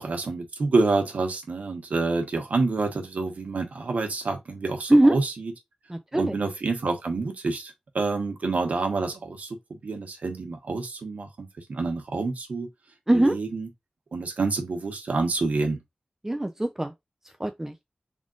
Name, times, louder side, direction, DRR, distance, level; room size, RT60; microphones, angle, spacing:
voice 1, 0.0-5.5 6.1-12.7 13.1-13.7 14.1-15.8, right 3 dB, 85° right, 1.1 m, -28 dB
voice 2, 5.9-6.4 13.1-13.3 16.2-16.9 17.4-17.7, right 1 dB, 15° right, 0.4 m, -21 dB
3.6 x 2.5 x 3.7 m
wide cardioid pair, 60°, 2 cm